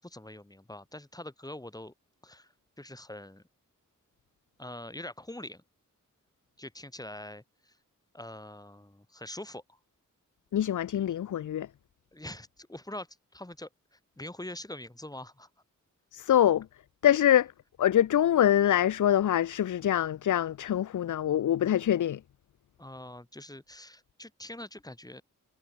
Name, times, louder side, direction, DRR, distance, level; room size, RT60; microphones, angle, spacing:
voice 1, 0.0-1.9 2.2-2.5 2.8-3.4 4.6-5.6 6.6-7.8 8.1-9.8 12.1-13.1 13.3-15.5 22.8-25.2, left 1 dB, 10° left, 6.4 m, -44 dB
voice 2, 10.5-11.7 16.1-16.7 17.0-17.5 17.8-22.2, left 11 dB, 65° left, 0.5 m, -24 dB
wide cardioid pair, 135°, 33 cm